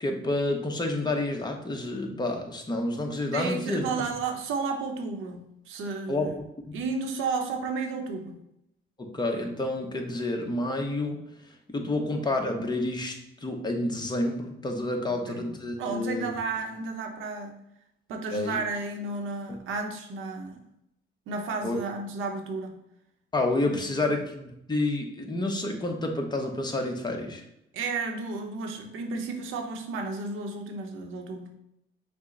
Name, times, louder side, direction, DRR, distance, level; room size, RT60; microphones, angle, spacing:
voice 1, 0.0-3.9 6.1-6.8 9.0-11.2 11.7-13.1 13.4-16.3 18.3-18.6 19.5-19.6 21.6-21.8 23.3-27.4, left 2 dB, 20° left, 3 dB, 0.8 m, -29 dB
voice 2, 3.3-6.4 6.7-8.4 15.1-15.4 15.8-17.6 18.1-20.6 21.3-22.8 23.7-24.1 27.7-31.5, right 4 dB, 85° right, 4 dB, 0.8 m, -33 dB
5.8 x 2.1 x 3.8 m, 0.81 s
cardioid pair, 90°, 20 cm